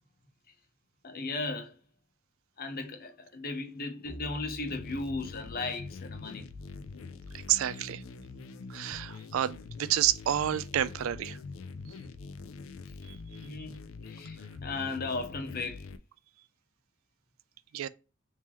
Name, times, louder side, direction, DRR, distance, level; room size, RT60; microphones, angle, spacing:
voice 1, 1.0-1.7 2.6-6.5 13.4-13.8 14.0-15.9, left 3 dB, 45° left, 0.8 m, -36 dB
sound 1, 4.1-6.7, right 1 dB, 15° left, 1.2 m, -49 dB
sound 2, 4.7-16.0, left 4 dB, 70° left, 0.4 m, -44 dB
voice 2, 7.5-8.0 8.7-11.4 17.7-17.9, right 11 dB, 70° right, 0.3 m, -29 dB
3.7 x 2.8 x 3.0 m
head